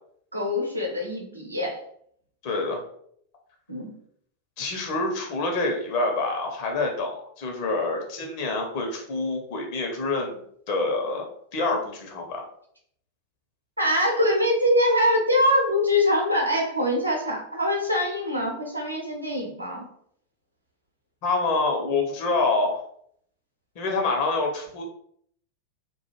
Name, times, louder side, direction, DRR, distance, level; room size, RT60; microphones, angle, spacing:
voice 1, 0.3-1.8 3.7-3.9 13.8-19.8, left 1 dB, 85° right, -1 dB, 0.7 m, -23 dB
voice 2, 2.4-2.8 4.6-10.4 10.7-11.3 11.5-12.4 21.2-22.8 23.8-24.8, left 3 dB, 45° left, 2 dB, 0.7 m, -26 dB
2.4 x 2.2 x 3.0 m, 0.66 s
figure-of-eight pair, 90°, 0 cm